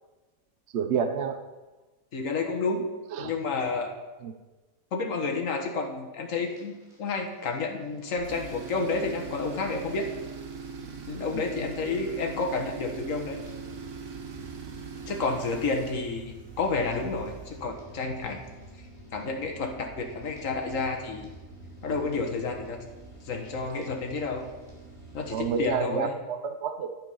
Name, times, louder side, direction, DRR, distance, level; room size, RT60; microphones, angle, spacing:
voice 1, 0.7-1.4 3.1-3.3 4.2-4.3 11.3-11.7 25.3-26.9, right 6 dB, 55° right, 7 dB, 0.9 m, -29 dB
voice 2, 2.1-2.8 3.2-3.9 4.9-10.1 11.1-13.4 15.0-18.4 19.1-21.3 21.8-22.8 23.3-24.4 25.1-26.2, left 3 dB, 60° left, 3 dB, 1.7 m, -30 dB
sound 1, 6.4-25.7, right 1 dB, 30° right, 4.0 m, -49 dB
Tools, 8.2-17.7, right 5 dB, 80° right, 1.7 m, -41 dB
10.5 x 9.2 x 5.6 m, 1.2 s
omnidirectional pair, 1.6 m